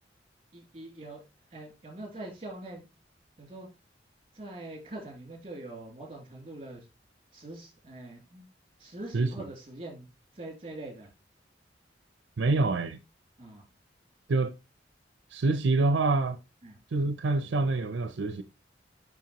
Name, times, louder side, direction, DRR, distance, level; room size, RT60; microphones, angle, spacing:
voice 1, 0.5-1.2 1.5-2.9 3.4-3.7 4.3-6.8 7.3-8.5 8.8-10.0 10.4-11.1 13.4-13.6 16.6-16.8, right 2 dB, 30° right, 2.5 m, -43 dB
voice 2, 12.4-13.0 14.3-14.6 15.3-16.4 16.9-18.4, right 3 dB, 75° right, 0.5 m, -26 dB
7.4 x 5.5 x 2.9 m
head